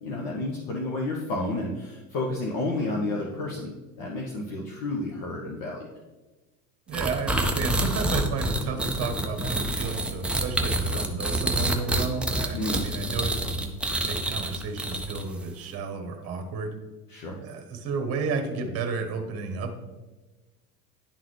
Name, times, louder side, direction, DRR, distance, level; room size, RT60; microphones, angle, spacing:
voice 1, 0.0-5.9 12.5-12.8 17.1-17.4, left 2 dB, 50° left, -2 dB, 1.2 m, -31 dB
sound 1, 6.9-15.4, right 1 dB, 5° right, 0.3 m, -27 dB
voice 2, 6.9-13.7 14.0-16.7 17.4-19.8, right 4 dB, 35° right, 5 dB, 1.2 m, -32 dB
10.5 x 3.8 x 3.3 m, 1.2 s
hypercardioid pair, 90°, 44 cm